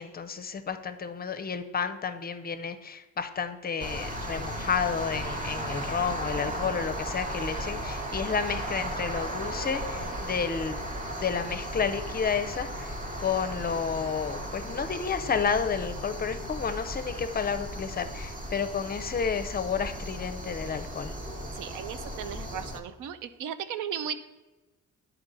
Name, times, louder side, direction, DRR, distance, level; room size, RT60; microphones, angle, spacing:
voice 1, 0.0-10.8 11.2-12.9 13.2-21.1, left 6 dB, 30° left, 10 dB, 0.5 m, -31 dB
sound 1, 3.8-22.8, equal, 25° right, 1.1 m, -36 dB
voice 2, 21.6-24.2, right 8 dB, 85° right, 11 dB, 0.6 m, -36 dB
9.6 x 4.4 x 3.9 m, 1.1 s
cardioid pair, 90°, 30 cm